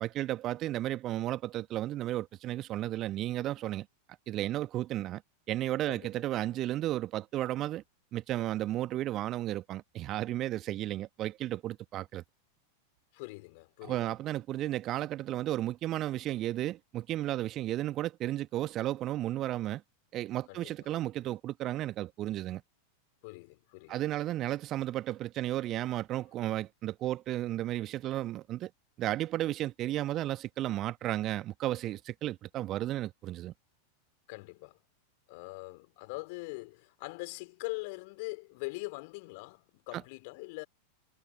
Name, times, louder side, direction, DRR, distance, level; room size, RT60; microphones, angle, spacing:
voice 1, 0.0-3.9 4.3-5.2 5.5-7.8 8.1-12.2 13.8-19.8 20.1-22.6 23.9-28.7 29.0-33.5, right 14 dB, 35° right, 1.2 m, -33 dB
voice 2, 5.9-6.2 13.1-14.1 20.5-20.9 23.2-24.2 34.3-34.8 35.3-40.6, left 27 dB, 45° left, 4.2 m, -42 dB
figure-of-eight pair, 90°, 0 cm